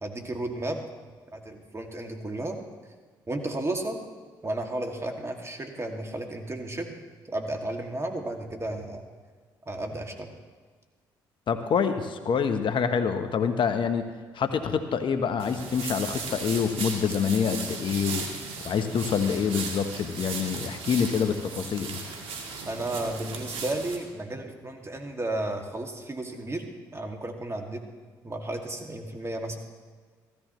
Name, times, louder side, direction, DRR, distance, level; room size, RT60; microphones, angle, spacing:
voice 1, 0.0-0.8 1.3-2.6 3.3-4.0 4.4-7.0 7.3-9.0 9.7-10.3 22.7-27.8 28.2-29.6, right 1 dB, 30° right, 3 dB, 2.2 m, -33 dB
voice 2, 11.5-14.0 14.3-18.3 18.6-22.0, left 6 dB, 55° left, 8 dB, 1.0 m, -26 dB
sound 1, 15.4-24.0, right 4 dB, 70° right, 2.0 m, -37 dB
15.5 x 14.0 x 3.1 m, 1.5 s
hypercardioid pair, 55°, 10 cm